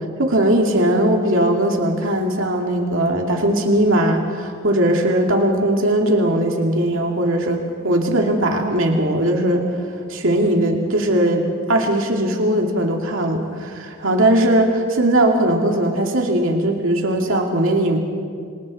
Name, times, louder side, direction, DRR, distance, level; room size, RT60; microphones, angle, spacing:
voice 1, 0.2-9.6 10.1-18.0, right 1 dB, 80° right, 1 dB, 2.5 m, -19 dB
28.0 x 25.5 x 4.3 m, 2.2 s
head